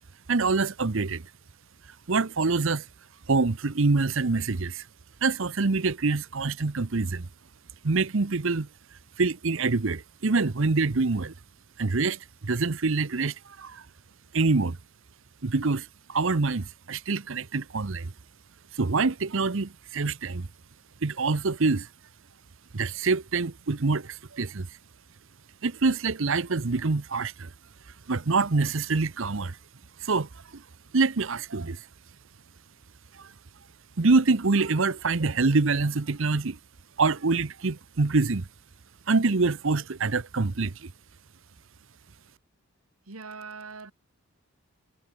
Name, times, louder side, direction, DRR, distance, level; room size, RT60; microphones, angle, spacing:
voice 1, 0.3-1.2 2.1-2.8 3.3-4.8 5.2-7.3 7.8-8.7 9.2-11.3 11.8-13.8 14.3-14.8 15.4-18.1 18.7-20.5 21.0-21.9 22.7-24.7 25.6-27.5 28.1-29.6 30.0-30.6 30.9-31.8 33.2-33.3 34.0-36.6 37.0-38.5 39.1-40.9, right 3 dB, 60° right, 0.8 m, -25 dB
voice 2, 43.1-43.9, right 4 dB, 75° right, 1.9 m, -41 dB
head